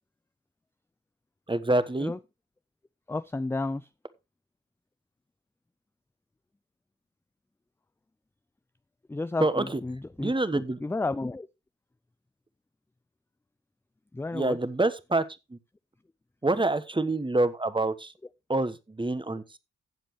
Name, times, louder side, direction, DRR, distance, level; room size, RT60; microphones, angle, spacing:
voice 1, 1.5-2.1 9.4-9.8 10.2-10.8 14.3-15.2 15.5-15.6 16.4-18.1 18.5-19.6, right 2 dB, 15° right, 1.2 m, -26 dB
voice 2, 3.1-3.9 9.1-11.5 14.1-14.6, left 2 dB, 5° left, 0.4 m, -32 dB
15.5 x 7.5 x 3.1 m
hypercardioid pair, 40°, 33 cm